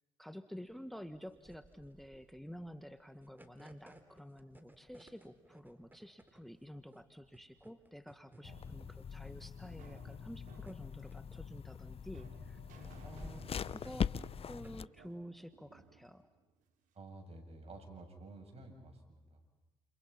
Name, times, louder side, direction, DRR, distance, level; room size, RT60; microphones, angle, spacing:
voice 1, 0.2-12.6 13.0-14.2 14.5-16.3, equal, ahead, 10 dB, 1.5 m, -50 dB
sound 1, 0.7-15.5, right 1 dB, 15° right, 3.7 m, -61 dB
sound 2, 8.4-14.9, left 7 dB, 45° left, 0.8 m, -42 dB
voice 2, 8.4-8.9 12.8-13.8 16.9-19.5, right 2 dB, 50° right, 4 dB, 7.7 m, -53 dB
sound 3, 9.0-17.1, right 6 dB, 70° right, 3.4 m, -61 dB
29.5 x 29.5 x 5.7 m, 1.1 s
supercardioid pair, 65°, 14 cm